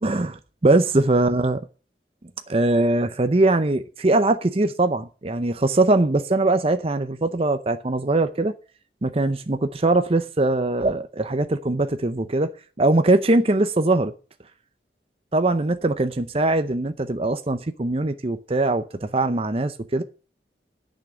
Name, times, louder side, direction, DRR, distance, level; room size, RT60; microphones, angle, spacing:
voice 1, 0.0-1.6 2.5-8.5 9.0-12.5 12.8-14.1 15.3-20.0, right 2 dB, 35° right, 0.7 m, -21 dB
10.5 x 6.2 x 8.7 m
head